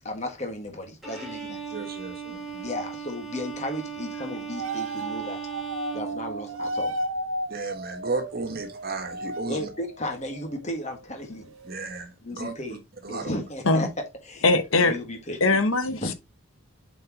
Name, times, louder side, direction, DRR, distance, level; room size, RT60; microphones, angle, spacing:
voice 1, 0.0-1.6 2.6-5.4 5.9-7.0 8.5-8.6 9.4-11.5 12.2-12.8 13.1-14.5 14.8-15.6 15.9-16.1, left 1 dB, 35° left, 1.7 m, -34 dB
Bowed string instrument, 1.0-6.9, right 6 dB, ahead, 3.2 m, -37 dB
voice 2, 1.7-2.7 7.5-9.7 11.6-12.5 13.0-13.3, right 3 dB, 50° right, 1.4 m, -34 dB
sound 1, 4.5-11.1 11.3-11.9, right 1 dB, 85° right, 0.9 m, -34 dB
voice 3, 14.4-15.0 15.4-16.1, left 3 dB, 85° left, 1.1 m, -21 dB
7.7 x 4.5 x 2.9 m
head